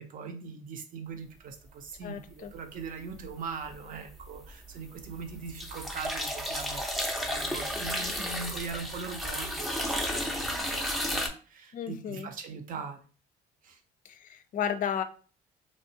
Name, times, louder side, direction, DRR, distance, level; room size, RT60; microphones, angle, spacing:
voice 1, 0.0-13.0 13.6-13.8, right 5 dB, 55° right, 6 dB, 0.7 m, -41 dB
voice 2, 2.0-2.5 11.7-12.3 14.0-15.0, left 8 dB, 50° left, 10 dB, 0.5 m, -33 dB
sound 1, 3.1-3.7 4.1-11.3, equal, ahead, 0.5 m, -33 dB
3.2 x 2.3 x 2.7 m, 0.38 s
cardioid pair, 110°, 17 cm